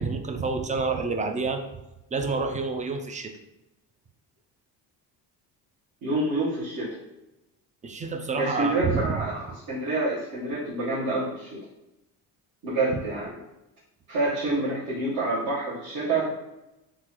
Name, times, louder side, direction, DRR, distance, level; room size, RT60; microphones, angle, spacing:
voice 1, 0.0-1.6 2.1-3.3 7.8-9.1, right 4 dB, 20° right, 6 dB, 0.3 m, -28 dB
voice 2, 6.0-7.0 8.4-11.6 12.6-13.3 14.1-16.3, right 2 dB, 55° right, -9 dB, 1.2 m, -27 dB
3.7 x 2.4 x 2.9 m, 0.95 s
supercardioid pair, 80°, 41 cm